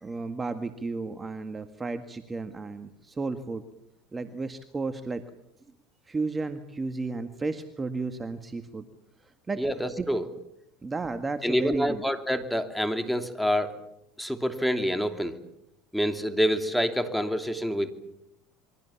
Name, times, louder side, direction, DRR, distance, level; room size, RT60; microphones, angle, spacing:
voice 1, 0.0-3.6 4.1-5.2 6.1-8.8 9.5-9.6 10.0-10.1 10.8-12.0, right 3 dB, 20° right, 8 dB, 1.8 m, -33 dB
voice 2, 9.6-10.2 11.4-13.7 14.2-15.4 15.9-17.9, equal, ahead, 7 dB, 2.9 m, -27 dB
28.0 x 23.0 x 7.2 m, 0.80 s
supercardioid pair, 100°, 0 cm